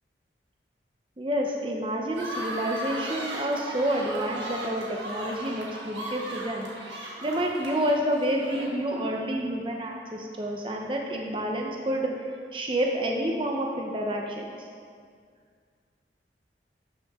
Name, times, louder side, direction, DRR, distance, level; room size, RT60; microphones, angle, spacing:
voice 1, 1.2-12.1 12.5-14.5, right 1 dB, 30° right, 0 dB, 0.7 m, -29 dB
sound 1, 2.1-9.1, right 1 dB, 85° right, 1.8 m, -37 dB
12.0 x 6.9 x 3.6 m, 2.1 s
head